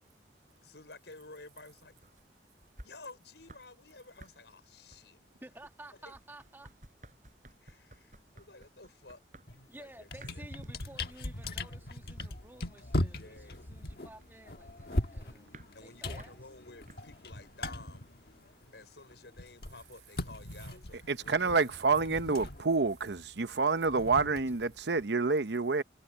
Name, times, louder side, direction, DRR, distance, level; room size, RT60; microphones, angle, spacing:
voice 1, 0.6-2.0 2.8-5.2 5.9-6.2 7.6-9.2 9.8-10.5 13.0-13.7 15.7-18.1 18.7-21.7, left 3 dB, 80° left, 5.4 m, -52 dB
sound 1, 1.6-3.8 4.0-17.4, right 1 dB, 45° right, 8.0 m, -57 dB
voice 2, 5.4-6.7 9.7-13.4 13.7-15.5 15.8-16.3, right 1 dB, 10° right, 1.6 m, -52 dB
sound 2, 9.5-9.7 10.0-18.8 19.1-25.1, left 1 dB, 60° left, 1.5 m, -39 dB
voice 3, 21.1-25.8, right 4 dB, 75° right, 0.9 m, -28 dB
head